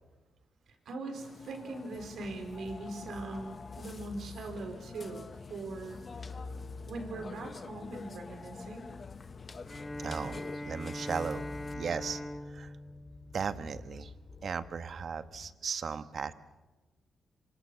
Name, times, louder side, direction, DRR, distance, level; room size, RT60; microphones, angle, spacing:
voice 1, 0.8-6.5 6.9-8.9, right 2 dB, 70° right, 5 dB, 4.6 m, -41 dB
Burping eructation, 1.1-11.7, left 4 dB, 40° left, 1.0 m, -48 dB
sound 1, 2.0-15.5, left 4 dB, 55° left, 2.4 m, -50 dB
Bowed string instrument, 9.6-14.1, left 1 dB, 20° left, 1.4 m, -42 dB
voice 2, 10.0-10.4 10.7-11.5 11.7-12.2 12.5-12.7 13.3-14.1 14.4-16.3, right 6 dB, 55° right, 11 dB, 1.3 m, -36 dB
26.0 x 25.5 x 6.9 m, 1.1 s
cardioid pair, 85°, 0 cm